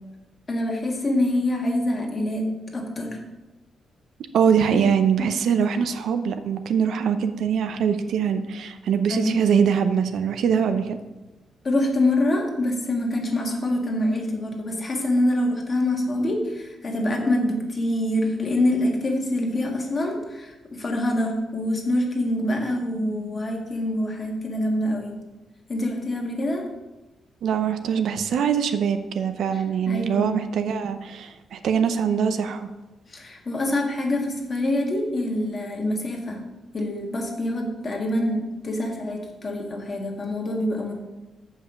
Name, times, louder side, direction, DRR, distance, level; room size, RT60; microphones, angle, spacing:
voice 1, 0.5-3.2 5.2-5.3 9.1-9.4 11.6-25.2 25.7-26.7 29.5-30.4 33.1-36.4 36.7-40.9, left 1 dB, 30° left, 1 dB, 1.5 m, -25 dB
voice 2, 4.3-11.0 27.4-32.7, right 7 dB, 70° right, 9 dB, 0.6 m, -23 dB
7.1 x 5.5 x 7.0 m, 1.1 s
wide cardioid pair, 165°, 0 cm